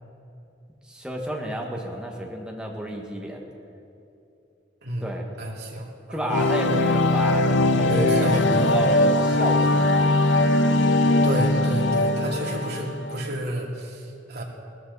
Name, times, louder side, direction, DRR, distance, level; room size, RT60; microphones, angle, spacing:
voice 1, 0.9-3.4 5.0-5.3 6.1-10.1, right 1 dB, 5° right, 0 dB, 1.6 m, -31 dB
voice 2, 5.4-6.4 7.9-8.9 11.2-14.4, right 1 dB, 60° right, -2 dB, 2.5 m, -30 dB
sound 1, 6.3-13.2, left 2 dB, 70° left, 0.7 m, -21 dB
19.0 x 13.5 x 4.2 m, 2.7 s
head